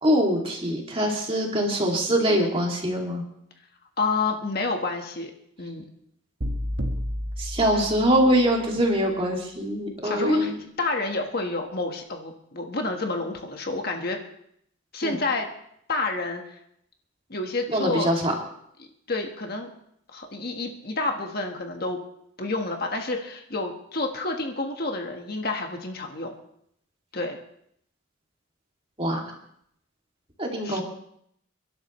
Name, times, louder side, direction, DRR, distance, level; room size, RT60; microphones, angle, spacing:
voice 1, 0.0-3.2 7.4-10.6 15.0-15.1 17.7-18.3 29.0-29.2 30.4-30.8, equal, 25° right, 0 dB, 2.5 m, -23 dB
voice 2, 4.0-5.3 5.6-5.8 10.0-10.5 10.8-14.2 14.9-15.5 15.9-16.6 17.3-18.1 18.8-19.7 20.1-22.0 22.4-26.3 27.1-27.4 30.6-30.8, left 3 dB, 45° left, 3 dB, 1.5 m, -29 dB
sound 1, 6.4-8.5, equal, 60° right, 1.5 m, -31 dB
28.5 x 11.5 x 3.2 m, 0.72 s
head